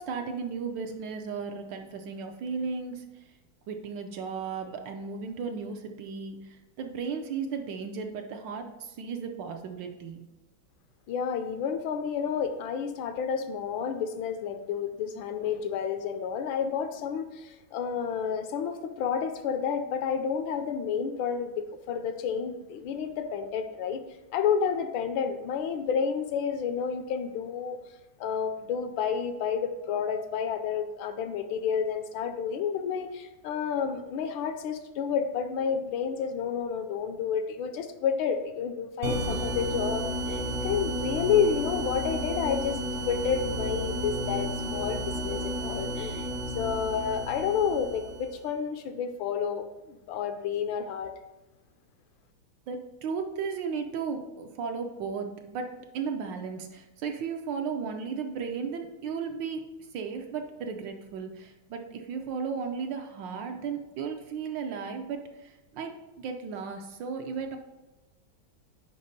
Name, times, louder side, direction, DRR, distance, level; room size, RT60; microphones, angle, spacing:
voice 1, 0.0-3.1 3.7-10.2 52.7-59.7 59.9-67.6, right 5 dB, 70° right, 5 dB, 1.2 m, -35 dB
voice 2, 11.1-24.0 24.3-27.8 28.2-46.3 46.5-51.1, left 7 dB, 75° left, 8 dB, 1.3 m, -30 dB
sound 1, 39.0-48.4, equal, 55° right, 0.8 m, -32 dB
5.4 x 5.1 x 5.1 m, 1.1 s
omnidirectional pair, 2.3 m